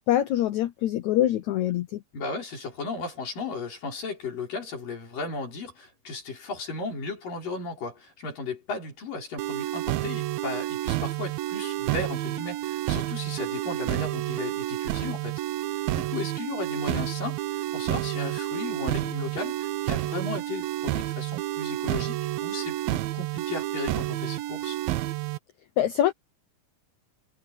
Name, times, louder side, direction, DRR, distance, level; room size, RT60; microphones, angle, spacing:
voice 1, 0.0-2.0 25.8-26.1, left 12 dB, 85° left, 1.6 m, -24 dB
voice 2, 2.1-15.4 15.9-24.8, left 3 dB, 60° left, 7.7 m, -35 dB
sound 1, 9.4-25.4, right 15 dB, 75° right, 2.5 m, -30 dB
omnidirectional pair, 4.4 m